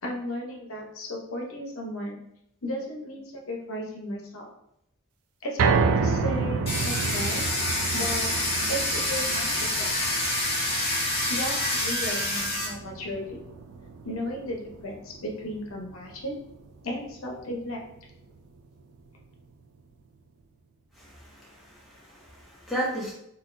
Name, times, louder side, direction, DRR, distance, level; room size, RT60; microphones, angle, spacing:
voice 1, 0.0-2.2 2.6-4.5 5.4-7.5 7.9-8.3 8.6-10.2 11.3-13.4 14.0-16.4 16.8-17.8, equal, 70° left, 1 dB, 0.7 m, -35 dB
sound 1, 5.6-17.8 18.2-18.3 18.8-18.9, right 5 dB, 75° right, 0.3 m, -31 dB
Domestic sounds home sounds, 6.7-12.7, left 1 dB, 25° left, 1.0 m, -27 dB
voice 2, 21.0-23.1, right 1 dB, ahead, -8 dB, 0.9 m, -34 dB
4.0 x 2.4 x 2.5 m, 0.78 s
head